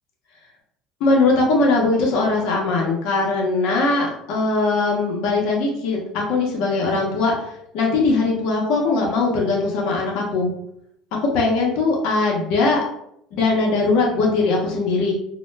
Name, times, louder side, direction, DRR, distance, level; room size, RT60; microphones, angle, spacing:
voice 1, 1.0-7.3 7.7-10.5 11.3-12.8 13.3-15.1, left 3 dB, 70° left, -2 dB, 0.7 m, -20 dB
2.1 x 2.0 x 3.2 m, 0.75 s
supercardioid pair, 85°, 0 cm